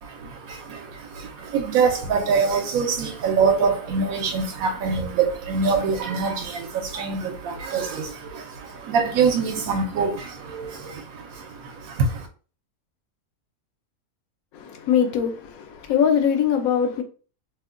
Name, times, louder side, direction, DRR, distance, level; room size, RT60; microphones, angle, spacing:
voice 1, 0.0-12.3, right 5 dB, 80° right, 1.0 m, -25 dB
voice 2, 14.5-17.0, left 8 dB, 80° left, 1.1 m, -22 dB
2.8 x 2.1 x 3.6 m
omnidirectional pair, 1.5 m